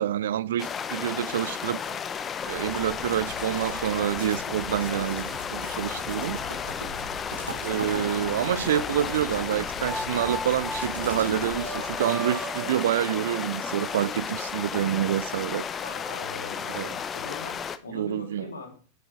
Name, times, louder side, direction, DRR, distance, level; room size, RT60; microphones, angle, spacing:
voice 1, 0.0-2.0 2.5-6.4 7.6-15.7 16.7-16.9 17.9-18.5, right 11 dB, 60° right, 0.4 m, -27 dB
sound 1, 0.6-17.8, left 7 dB, 25° left, 0.6 m, -33 dB
sound 2, 2.3-12.1, right 1 dB, 85° right, 2.9 m, -40 dB
voice 2, 3.0-3.3 8.1-8.5 15.8-18.8, left 4 dB, 75° left, 2.6 m, -42 dB
sound 3, 4.7-4.8 5.3-6.2 6.9-7.0 8.1-9.2 9.8-14.7, right 1 dB, 5° right, 2.0 m, -39 dB
10.5 x 7.8 x 3.4 m
figure-of-eight pair, 90°, 0 cm